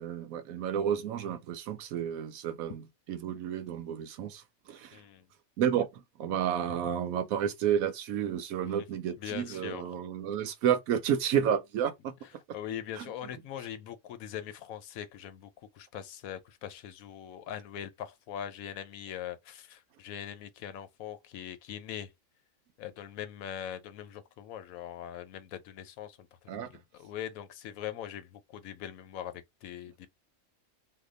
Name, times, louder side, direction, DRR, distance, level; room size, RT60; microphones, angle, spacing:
voice 1, 0.0-5.0 5.6-12.1 13.0-13.1 26.5-26.7, right 9 dB, 85° right, 1.1 m, -31 dB
voice 2, 4.9-5.3 9.2-9.9 12.5-22.1 22.8-30.1, left 10 dB, 85° left, 1.1 m, -41 dB
2.8 x 2.2 x 3.7 m
omnidirectional pair, 1.4 m